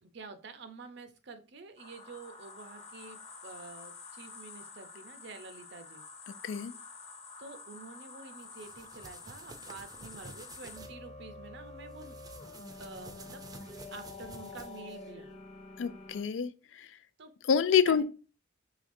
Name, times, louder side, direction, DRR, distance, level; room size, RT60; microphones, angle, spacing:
voice 1, 0.0-6.0 7.4-12.2 12.8-15.3 17.2-17.3 17.9-18.0, right 4 dB, 65° right, 0.7 m, -48 dB
sound 1, 1.8-16.2, left 3 dB, 35° left, 0.8 m, -48 dB
sound 2, 8.4-10.9 11.9-15.1, right 3 dB, 20° right, 0.5 m, -51 dB
voice 2, 15.8-16.9 17.5-18.0, left 7 dB, 80° left, 0.4 m, -27 dB
5.0 x 3.3 x 2.6 m
head